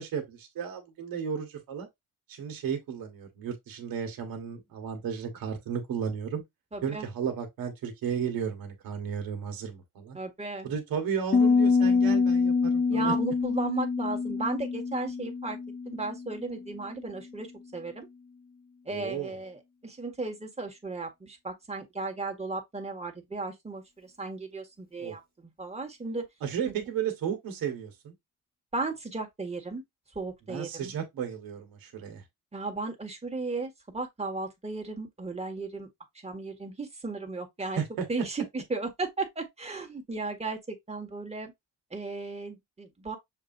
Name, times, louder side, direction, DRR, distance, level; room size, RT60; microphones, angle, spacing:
voice 1, 0.0-1.9 2.3-6.4 6.8-10.2 10.6-13.1 18.9-19.3 25.0-25.1 26.4-28.1 30.5-32.2 37.7-38.1, right 7 dB, 80° right, 1.6 m, -34 dB
voice 2, 6.7-7.0 10.1-10.7 12.9-15.6 15.8-18.1 18.8-26.3 26.7-26.8 28.7-29.8 30.1-30.9 32.5-35.9 36.2-37.8 38.1-41.5 41.9-43.2, right 3 dB, 20° right, 1.6 m, -35 dB
Piano, 11.3-16.9, left 4 dB, 25° left, 0.5 m, -26 dB
6.6 x 2.8 x 2.7 m
cardioid pair, 85°, 34 cm